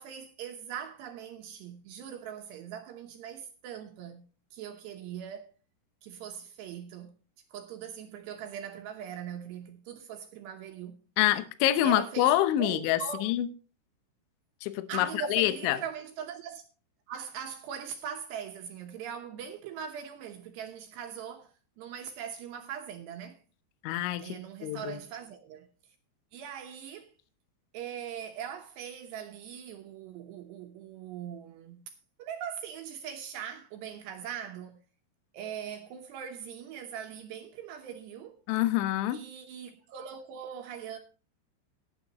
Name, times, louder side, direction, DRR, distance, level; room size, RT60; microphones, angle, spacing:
voice 1, 0.0-5.5 6.0-7.2 7.5-11.0 11.8-13.3 14.9-16.6 17.1-23.4 24.2-25.7 26.3-27.1 27.7-31.9 32.2-34.8 35.3-38.4 39.1-41.0, right 8 dB, 75° right, 2.7 m, -41 dB
voice 2, 11.2-13.5 14.6-15.8 23.8-24.4 24.6-25.0 38.5-39.2, left 14 dB, 75° left, 3.1 m, -26 dB
20.0 x 8.8 x 3.0 m
omnidirectional pair, 5.9 m